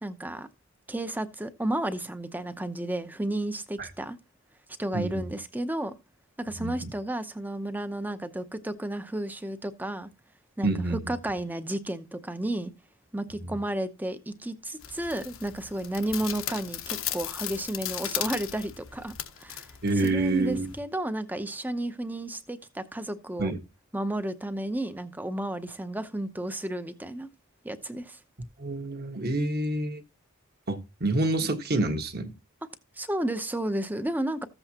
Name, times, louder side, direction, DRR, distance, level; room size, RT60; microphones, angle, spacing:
voice 1, 0.0-0.5 0.9-4.2 4.8-5.9 6.4-10.1 10.6-12.7 13.1-19.8 20.0-23.5 23.9-27.3 27.6-28.2 33.0-34.5, right 1 dB, 10° right, 0.7 m, -32 dB
voice 2, 6.6-6.9 10.6-11.0 19.8-20.7 23.4-23.6 28.6-30.0 30.7-32.3, right 2 dB, 45° right, 1.4 m, -27 dB
sound 1, 14.8-20.8, left 11 dB, 65° left, 1.0 m, -37 dB
14.5 x 7.9 x 2.9 m
head